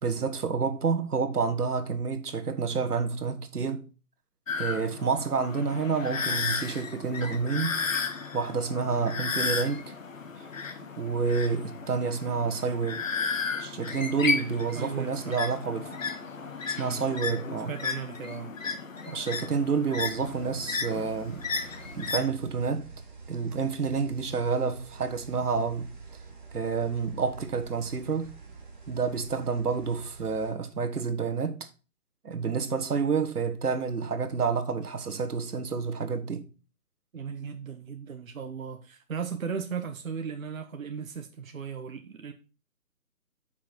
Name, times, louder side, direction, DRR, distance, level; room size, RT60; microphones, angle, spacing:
voice 1, 0.0-3.9 4.6-7.8 8.3-9.9 11.0-13.0 13.6-16.0 16.7-17.7 19.1-21.4 21.9-22.9 23.3-25.9 26.5-28.3 28.9-31.7 32.2-36.5, right 5 dB, 85° right, 1.6 m, -29 dB
sound 1, 4.5-22.3, left 5 dB, 60° left, 1.3 m, -34 dB
voice 2, 14.8-15.3 16.8-17.0 17.7-18.5 37.1-42.3, right 6 dB, 65° right, 1.1 m, -36 dB
sound 2, 20.0-30.5, right 4 dB, 30° right, 1.7 m, -47 dB
7.6 x 5.8 x 4.4 m
hypercardioid pair, 175°, 44 cm